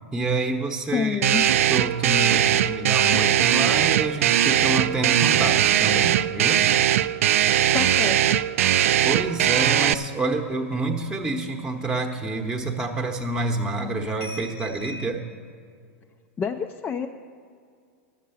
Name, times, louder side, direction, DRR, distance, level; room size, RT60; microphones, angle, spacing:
voice 1, 0.1-1.2 1.7-6.7 9.0-15.2, right 2 dB, 10° right, 2 dB, 0.9 m, -28 dB
voice 2, 0.9-1.4 7.7-8.4 16.4-17.1, left 6 dB, 20° left, 4 dB, 0.4 m, -28 dB
sound 1, 1.2-9.9, right 11 dB, 75° right, 0.3 m, -20 dB
sound 2, 6.2-10.2 10.5-11.0 11.3-12.5 12.8-13.4 14.2-15.1, equal, 35° left, 0.9 m, -48 dB
11.5 x 7.4 x 7.0 m, 2.2 s
hypercardioid pair, 120°, 8 cm